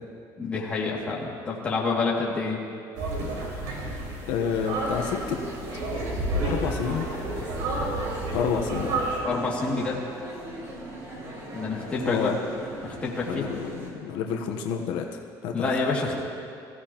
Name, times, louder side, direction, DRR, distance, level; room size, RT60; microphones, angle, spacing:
voice 1, 0.4-2.6 9.2-10.0 11.5-12.3 12.8-13.5 15.5-16.2, left 4 dB, 15° left, -5 dB, 2.3 m, -28 dB
sound 1, 2.9-9.2, right 2 dB, 85° right, 4.7 m, -30 dB
voice 2, 4.3-5.4 6.4-7.1 8.3-9.0 12.0-12.4 13.3-15.7, left 7 dB, 75° left, 2 dB, 1.0 m, -29 dB
sound 2, 4.7-13.9, right 1 dB, 40° right, 3.3 m, -40 dB
23.5 x 15.5 x 3.0 m, 2.4 s
cardioid pair, 175°, 8 cm